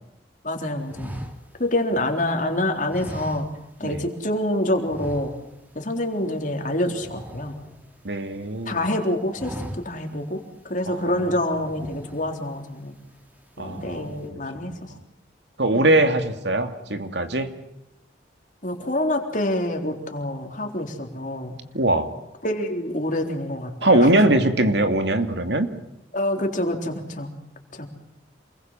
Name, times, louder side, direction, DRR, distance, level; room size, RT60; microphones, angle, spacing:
voice 1, 0.4-1.2 1.6-3.5 3.8-5.3 5.7-7.6 8.7-13.0 13.6-14.8 15.7-15.9 18.6-21.6 22.4-24.1 26.1-27.3 27.7-27.9, left 1 dB, 45° left, 4 dB, 3.8 m, -26 dB
sound 1, 0.9-2.4 2.9-4.0 4.2-4.4 4.8-5.7 6.0-6.2 6.5-8.2 8.7-8.9 9.2-10.2 10.6-10.7 11.5-12.6 13.1-13.4 13.7-14.3, equal, 10° right, 2.7 m, -39 dB
voice 2, 8.0-8.8 10.9-11.1 13.6-14.2 15.6-17.5 21.7-22.1 23.8-25.7, right 1 dB, 70° right, 7 dB, 2.6 m, -21 dB
28.0 x 21.5 x 7.6 m, 0.84 s
head